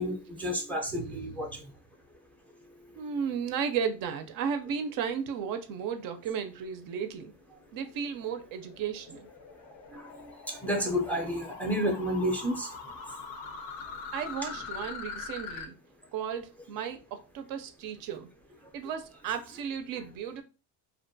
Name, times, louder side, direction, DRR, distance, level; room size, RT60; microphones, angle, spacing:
voice 1, 0.0-1.5 9.9-10.1 10.5-12.7, equal, 5° left, 0.5 m, -30 dB
voice 2, 0.9-1.3 3.0-7.3 7.7-9.3 14.1-15.7 16.1-18.3 18.7-20.4, right 7 dB, 60° right, 0.5 m, -34 dB
sound 1, 7.6-15.7, left 5 dB, 90° left, 0.7 m, -43 dB
2.5 x 2.1 x 2.6 m
cardioid pair, 110°, 40 cm